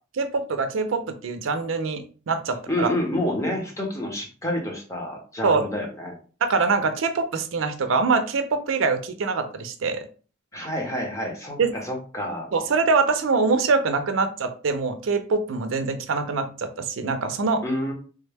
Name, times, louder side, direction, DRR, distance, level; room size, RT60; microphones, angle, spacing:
voice 1, 0.1-2.9 5.4-5.6 6.4-10.1 11.6-11.7 12.5-17.6, right 4 dB, 85° right, 8 dB, 0.5 m, -24 dB
voice 2, 2.7-6.2 10.5-12.5 17.6-17.9, left 1 dB, 15° left, 0 dB, 0.8 m, -28 dB
3.4 x 2.1 x 3.3 m, 0.38 s
head